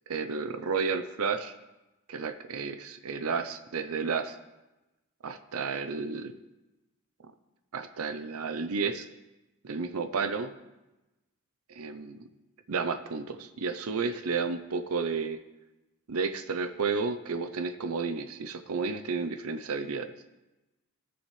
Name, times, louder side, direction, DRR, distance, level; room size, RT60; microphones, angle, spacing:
voice 1, 0.1-1.5 2.1-4.4 5.2-6.3 7.7-9.1 9.6-10.5 11.7-12.2 12.7-15.4 16.1-20.1, right 5 dB, 80° right, 9 dB, 0.6 m, -32 dB
18.0 x 7.1 x 3.3 m, 1.0 s
head